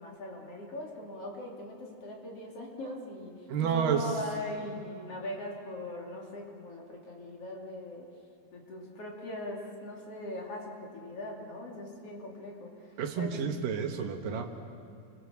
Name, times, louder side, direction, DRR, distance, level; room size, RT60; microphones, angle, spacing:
voice 1, 0.0-8.1 8.5-13.4, left 1 dB, 45° left, -1 dB, 3.9 m, -40 dB
voice 2, 3.5-4.1 13.0-14.5, right 7 dB, 85° right, 5 dB, 3.2 m, -30 dB
29.5 x 22.0 x 7.2 m, 2.5 s
omnidirectional pair, 3.8 m